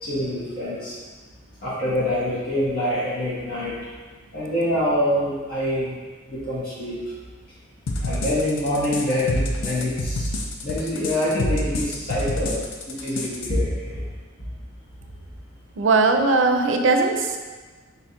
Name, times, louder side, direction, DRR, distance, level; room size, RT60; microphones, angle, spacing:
voice 1, 0.0-0.9 1.6-3.7 4.3-5.9 6.3-7.0 8.0-10.3 10.6-12.5 12.9-14.0, left 1 dB, 50° left, -9 dB, 1.0 m, -25 dB
sound 1, 7.9-13.5, left 1 dB, 85° left, 0.5 m, -27 dB
voice 2, 15.8-17.4, right 3 dB, 70° right, 4 dB, 0.4 m, -19 dB
4.0 x 2.4 x 4.2 m, 1.4 s
head